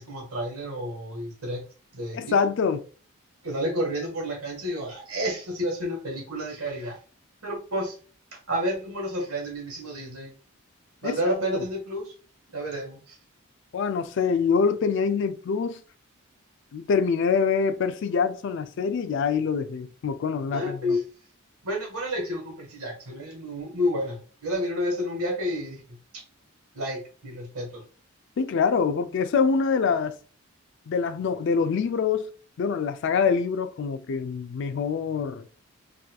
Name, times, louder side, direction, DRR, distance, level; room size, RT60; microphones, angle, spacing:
voice 1, 0.0-1.6 1.9-2.3 3.4-7.0 7.4-7.9 8.3-10.3 11.0-12.1 12.5-13.2 20.5-21.0 21.6-26.2 26.7-27.8, equal, 90° right, 1.4 m, -30 dB
voice 2, 2.1-2.8 11.0-11.2 13.7-15.8 16.7-21.0 28.4-30.1 30.9-32.3 32.6-35.5, left 5 dB, 55° left, 0.3 m, -25 dB
4.0 x 2.5 x 2.3 m
head